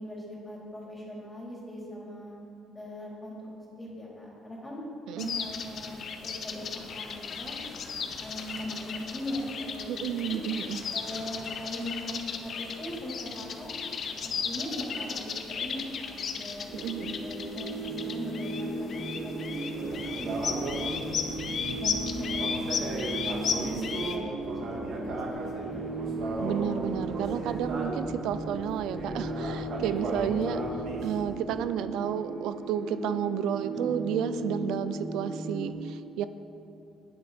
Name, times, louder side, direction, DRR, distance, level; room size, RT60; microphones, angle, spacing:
voice 1, 0.0-2.3 2.7-3.4 3.8-4.8 5.2-6.7 6.9-7.6 8.0-10.4 10.9-14.0 14.2-16.7 17.2-21.4 21.8-22.8 23.2-26.0 27.6-27.7 33.7-34.0, equal, 10° left, -5 dB, 3.7 m, -40 dB
sound 1, 5.2-24.2, left 6 dB, 45° left, 1.0 m, -36 dB
voice 2, 9.9-10.8 16.7-17.2 26.4-36.3, right 9 dB, 75° right, 12 dB, 0.4 m, -32 dB
sound 2, 16.7-35.7, right 2 dB, 40° right, 2.7 m, -36 dB
sound 3, 19.7-31.3, right 2 dB, 60° right, 2.3 m, -37 dB
20.0 x 8.6 x 4.3 m, 2.6 s
cardioid pair, 140°, 0 cm